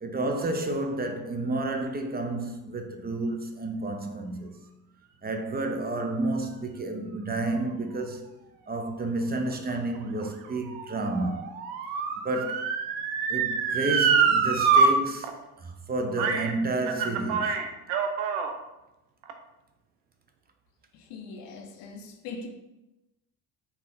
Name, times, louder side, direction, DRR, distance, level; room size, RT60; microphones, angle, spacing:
voice 1, 0.0-4.5 5.2-8.3 8.7-11.5 12.2-12.7 13.3-15.3 15.6-17.6, right 2 dB, 20° right, 0.6 m, -30 dB
Motor vehicle (road) / Siren, 9.7-14.9 15.2-15.3 16.2-16.5 16.8-18.5 19.2-19.3, right 5 dB, 90° right, 0.6 m, -25 dB
voice 2, 20.9-22.5, left 4 dB, 80° left, 0.8 m, -41 dB
4.3 x 2.7 x 3.7 m
supercardioid pair, 75°, 42 cm